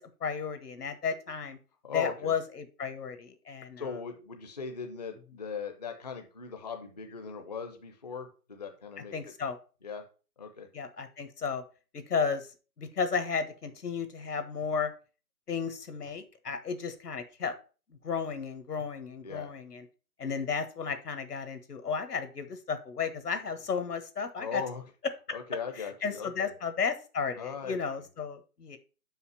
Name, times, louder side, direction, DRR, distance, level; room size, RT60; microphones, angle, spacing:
voice 1, 0.0-1.6 1.9-3.8 9.1-9.6 10.7-11.6 11.9-12.5 12.8-14.9 15.5-17.5 18.0-19.8 20.2-24.6 26.0-28.8, left 6 dB, 75° left, 10 dB, 1.5 m, -33 dB
voice 2, 1.8-2.3 3.8-9.1 9.8-10.0 10.4-10.7 19.2-19.5 24.4-24.8 25.3-26.5 27.3-27.8, left 6 dB, 25° left, 5 dB, 0.6 m, -39 dB
5.7 x 5.2 x 5.4 m, 0.35 s
hypercardioid pair, 155°, 47 cm